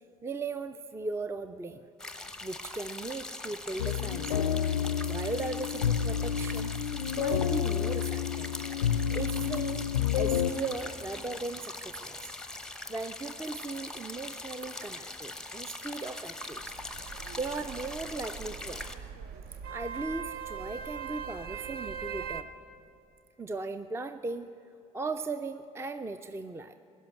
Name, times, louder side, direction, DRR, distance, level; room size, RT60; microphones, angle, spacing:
voice 1, 0.2-1.9 2.4-4.5 5.1-6.7 7.2-8.5 9.1-12.3 12.9-16.7 17.0-18.9 19.7-22.5 23.4-24.5 24.9-26.7, right 3 dB, 15° right, 11 dB, 0.5 m, -37 dB
sound 1, 2.0-19.0, left 2 dB, 5° left, 0.8 m, -42 dB
sound 2, 3.8-10.5, left 9 dB, 90° left, 0.4 m, -29 dB
sound 3, 16.4-22.4, right 7 dB, 55° right, 0.7 m, -41 dB
16.5 x 6.4 x 8.9 m, 2.6 s
hypercardioid pair, 60°, 19 cm